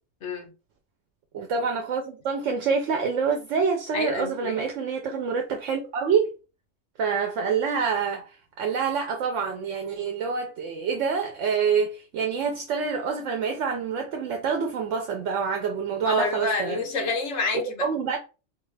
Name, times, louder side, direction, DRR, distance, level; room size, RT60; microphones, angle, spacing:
voice 1, 0.2-0.5 3.9-4.6 16.1-17.9, left 3 dB, 65° left, 1.2 m, -28 dB
voice 2, 1.3-6.3 7.0-16.8 17.8-18.2, right 6 dB, 75° right, 1.0 m, -26 dB
4.2 x 2.4 x 3.2 m
omnidirectional pair, 1.3 m